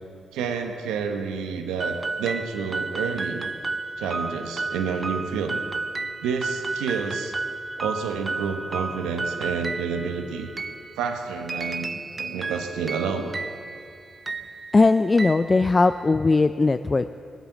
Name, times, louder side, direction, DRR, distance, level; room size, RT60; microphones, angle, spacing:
voice 1, 0.3-3.5 4.0-5.6 6.2-7.4 7.8-10.5 11.0-13.4, right 6 dB, 90° right, 6 dB, 1.1 m, -29 dB
sound 1, 1.8-16.2, right 3 dB, 35° right, 0.7 m, -33 dB
voice 2, 14.7-17.1, left 3 dB, 35° left, 11 dB, 0.4 m, -19 dB
20.0 x 8.2 x 7.5 m, 2.5 s
supercardioid pair, 55°, 0 cm